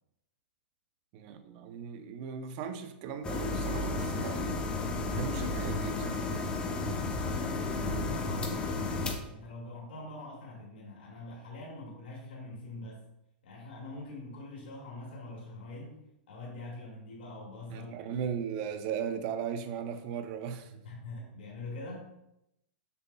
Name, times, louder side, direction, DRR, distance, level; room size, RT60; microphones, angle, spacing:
voice 1, 1.1-4.7 5.1-6.3 17.7-20.8, right 7 dB, 45° right, 0.7 m, -37 dB
sound 1, 3.2-9.1, left 2 dB, 15° left, 0.8 m, -32 dB
voice 2, 6.7-13.0 13.4-16.0 16.3-18.2 18.7-18.9 20.8-22.1, left 2 dB, 75° left, 2.2 m, -44 dB
6.8 x 6.6 x 2.3 m
hypercardioid pair, 140°, 6 cm